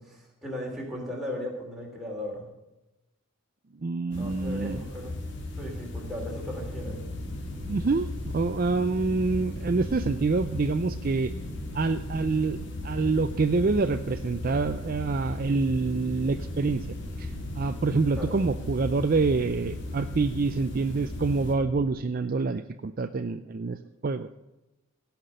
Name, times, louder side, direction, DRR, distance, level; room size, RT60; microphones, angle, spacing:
voice 1, 0.0-2.4 4.2-5.2 5.6-7.0 18.2-18.4, left 1 dB, ahead, -2 dB, 3.0 m, -37 dB
voice 2, 3.8-4.9 7.7-8.1 8.3-11.3 11.7-12.6 12.8-16.9 17.2-23.8 24.0-24.3, right 3 dB, 40° right, 9 dB, 0.4 m, -26 dB
sound 1, 4.1-21.6, left 1 dB, 55° left, 2.0 m, -37 dB
sound 2, 6.7-21.8, equal, 20° left, 3.5 m, -41 dB
16.0 x 5.9 x 7.7 m, 0.96 s
head